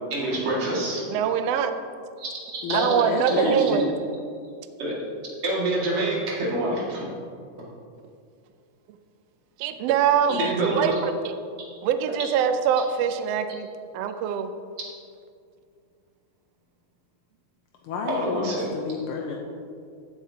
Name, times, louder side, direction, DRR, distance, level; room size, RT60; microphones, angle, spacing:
voice 1, 0.1-1.0 2.2-2.9 3.3-3.8 4.8-4.9 5.4-7.1 7.6-7.7 10.3-10.9 18.1-18.7, right 2 dB, 55° right, -5 dB, 3.0 m, -27 dB
voice 2, 1.1-1.7 2.7-3.9 9.6-11.4 11.8-13.7 13.9-14.5, right 8 dB, 75° right, 8 dB, 1.5 m, -24 dB
voice 3, 2.6-3.9 17.8-19.4, left 4 dB, 75° left, 0 dB, 1.2 m, -29 dB
15.0 x 8.2 x 2.8 m, 2.3 s
omnidirectional pair, 3.3 m